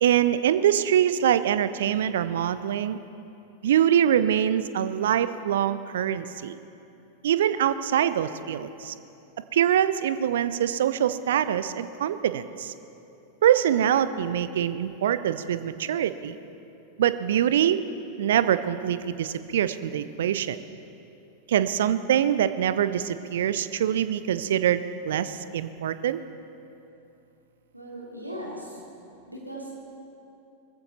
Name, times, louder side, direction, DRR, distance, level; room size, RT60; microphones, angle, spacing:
voice 1, 0.0-3.0 3.6-6.6 7.2-8.9 9.5-12.7 13.4-16.4 17.0-17.8 18.2-20.6 21.5-26.2, right 10 dB, 60° right, 14 dB, 0.6 m, -24 dB
voice 2, 27.7-28.8 29.3-29.8, right 1 dB, 85° right, -3 dB, 2.7 m, -38 dB
20.5 x 15.0 x 4.1 m, 2.8 s
figure-of-eight pair, 90°, 0 cm